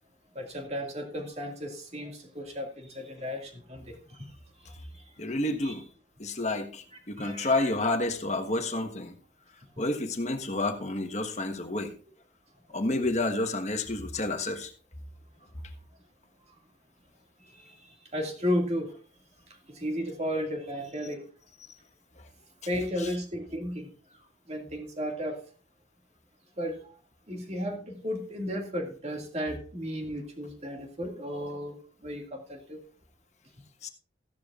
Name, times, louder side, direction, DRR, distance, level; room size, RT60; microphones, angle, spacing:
voice 1, 0.3-4.2 4.9-5.0 5.6-5.8 7.2-7.7 17.5-17.8 18.1-18.9 19.7-21.2 22.7-23.9 24.5-25.4 26.6-26.9 27.3-32.8, equal, 35° right, 2 dB, 2.1 m, -34 dB
voice 2, 5.2-5.9 6.2-9.1 9.8-11.9 12.7-14.7 23.0-23.1 33.8-33.9, left 2 dB, 40° left, 5 dB, 1.3 m, -30 dB
15.0 x 12.0 x 2.5 m, 0.40 s
head